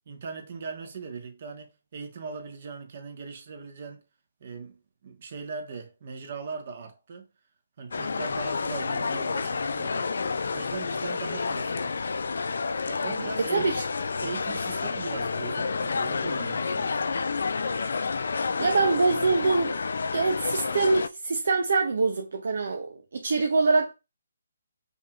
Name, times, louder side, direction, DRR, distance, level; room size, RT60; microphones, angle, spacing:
voice 1, 0.1-4.0 4.4-7.3 7.8-10.1 10.5-12.0 12.8-13.7 14.2-17.1, right 5 dB, 50° right, 1.1 m, -39 dB
sound 1, 7.9-21.1, left 4 dB, 70° left, 0.3 m, -29 dB
voice 2, 13.5-13.8 18.6-19.8 20.1-23.9, right 3 dB, 65° right, 0.6 m, -24 dB
5.4 x 2.9 x 2.4 m
figure-of-eight pair, 150°, 0 cm